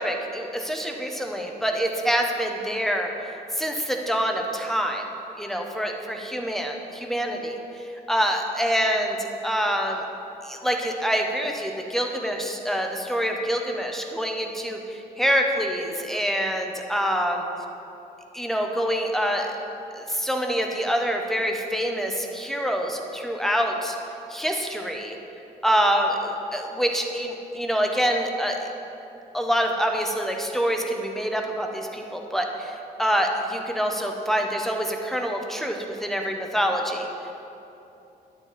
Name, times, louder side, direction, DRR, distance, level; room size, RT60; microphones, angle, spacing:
voice 1, 0.0-5.0 5.4-10.0 10.4-17.4 18.3-19.6 19.9-24.0 24.3-25.2 25.6-28.7 29.3-37.1, equal, ahead, 2 dB, 0.9 m, -26 dB
10.5 x 7.4 x 4.1 m, 2.9 s
cardioid pair, 105°, 17 cm